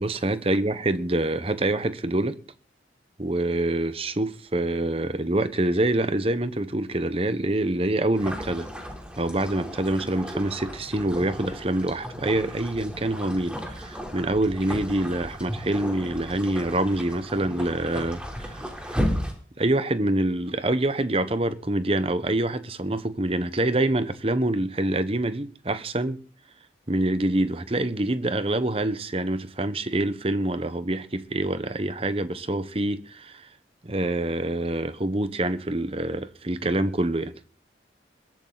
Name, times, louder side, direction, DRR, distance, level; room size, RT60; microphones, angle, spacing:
voice 1, 0.0-2.3 3.2-8.7 9.2-19.0 19.6-26.2 26.9-33.5 33.8-37.3, right 1 dB, 30° right, 1.1 m, -26 dB
sound 1, 8.2-19.3, equal, 5° right, 3.6 m, -34 dB
21.5 x 12.0 x 4.0 m
head